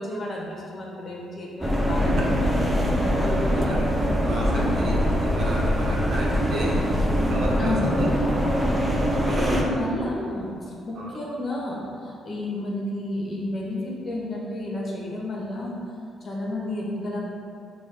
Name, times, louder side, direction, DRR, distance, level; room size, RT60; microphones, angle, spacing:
voice 1, 0.0-3.8 4.5-4.8 7.6-8.1 9.3-15.7 16.2-17.2, left 1 dB, 40° left, -3 dB, 1.1 m, -31 dB
sound 1, 1.6-9.6, equal, 10° right, 0.6 m, -23 dB
voice 2, 3.5-3.9 4.2-4.5 4.8-4.9 5.2-6.7 7.1-7.7 8.2-9.4 11.0-11.1, right 1 dB, 65° right, -4 dB, 1.1 m, -34 dB
6.2 x 2.5 x 3.5 m, 2.5 s
cardioid pair, 90°, 0 cm